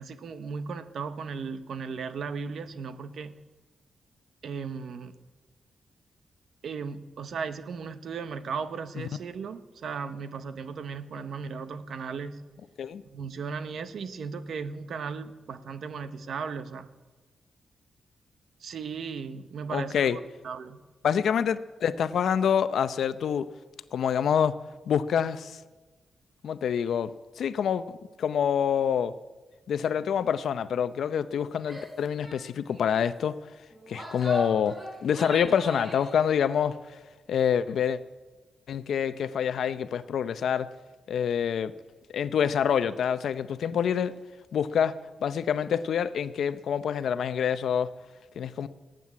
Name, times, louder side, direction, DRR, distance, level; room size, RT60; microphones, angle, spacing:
voice 1, 0.0-3.4 4.4-5.1 6.6-12.5 13.1-16.9 18.6-20.2 20.4-20.8, right 5 dB, 65° right, 11 dB, 0.9 m, -36 dB
voice 2, 19.7-20.2 21.0-23.5 23.9-24.5 24.9-25.6 26.4-27.1 27.4-29.1 29.7-33.4 33.9-36.8 37.3-38.0 38.7-40.7 41.1-41.7 42.1-44.1 44.5-47.9 48.4-48.7, left 8 dB, 75° left, 14 dB, 0.6 m, -26 dB
Female speech woman speaking / Yell, 31.6-31.9 32.2-32.4 32.7-33.0 33.7-36.1, equal, 25° right, 4.8 m, -40 dB
18.5 x 9.2 x 8.4 m, 1.2 s
wide cardioid pair, 170°, 0 cm